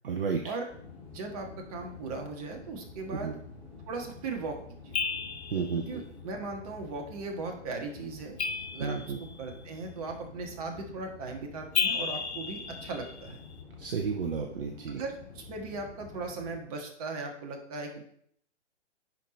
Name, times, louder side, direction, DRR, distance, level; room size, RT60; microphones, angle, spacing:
voice 1, 0.0-0.4 3.1-3.3 5.5-5.8 8.8-9.2 13.8-15.0, right 5 dB, 50° right, 4 dB, 0.9 m, -32 dB
sound 1, 0.7-16.6, left 4 dB, 5° left, 1.6 m, -49 dB
voice 2, 1.1-3.4 3.9-4.6 4.8-4.9 5.7-8.4 8.7-13.4 14.9-18.0, right 3 dB, 30° right, 2 dB, 1.5 m, -38 dB
sound 2, 4.9-5.8 8.4-9.4 11.7-13.4, left 6 dB, 65° left, 0.8 m, -33 dB
10.5 x 4.7 x 4.2 m, 0.66 s
figure-of-eight pair, 130°, 36 cm